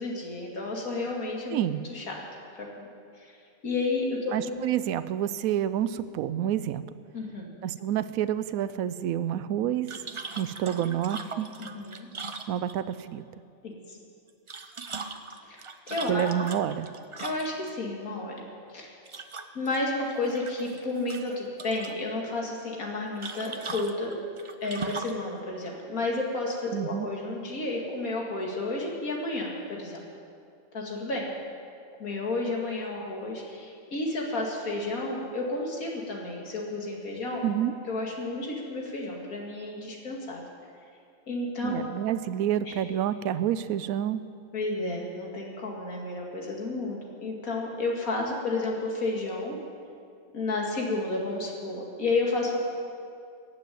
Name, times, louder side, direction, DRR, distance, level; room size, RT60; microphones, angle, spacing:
voice 1, 0.0-1.6 1.9-2.2 2.5-2.9 3.2-3.4 3.6-4.6 7.1-7.5 11.6-12.1 13.6-14.0 15.4-15.6 15.9-16.3 17.2-18.4 18.7-18.9 19.5-24.1 24.6-30.0 30.7-31.3 32.0-37.4 37.9-40.4 41.3-41.9 44.5-49.6 50.3-52.6, left 2 dB, 75° left, -1 dB, 2.6 m, -31 dB
voice 2, 4.3-6.8 7.6-9.9 10.4-11.5 12.5-13.2 16.1-16.9 26.7-27.1 37.4-37.7 41.6-44.2, right 10 dB, 75° right, 13 dB, 1.0 m, -28 dB
sound 1, 9.9-13.0 14.3-17.7 19.1-19.8 20.1-20.8 21.1-22.0 23.2-25.2, right 4 dB, 40° right, 0.4 m, -39 dB
16.0 x 7.7 x 9.2 m, 2.3 s
omnidirectional pair, 1.5 m